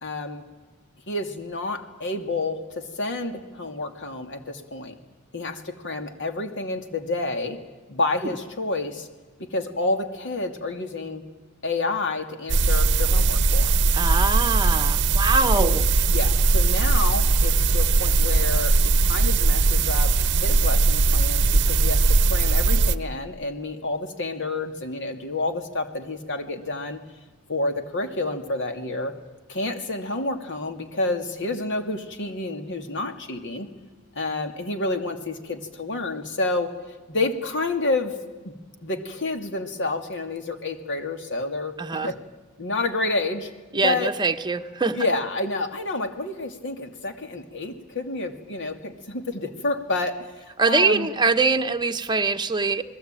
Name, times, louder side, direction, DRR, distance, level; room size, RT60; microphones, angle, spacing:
voice 1, 0.0-0.4 1.1-4.9 5.3-7.6 7.9-9.1 9.4-11.2 11.6-13.7 15.6-15.7 16.1-27.0 27.5-29.1 29.5-33.7 34.1-36.7 37.1-38.2 38.4-38.5 38.8-42.2 42.6-43.5 43.8-44.1 44.9-51.1, left 2 dB, 55° left, 6 dB, 2.6 m, -29 dB
sound 1, 12.5-23.0, right 3 dB, 55° right, 0.8 m, -20 dB
voice 2, 13.9-15.8 41.8-42.1 43.7-45.0 50.6-52.8, right 3 dB, 20° right, 7 dB, 1.1 m, -23 dB
28.5 x 20.5 x 9.1 m, 1.2 s
head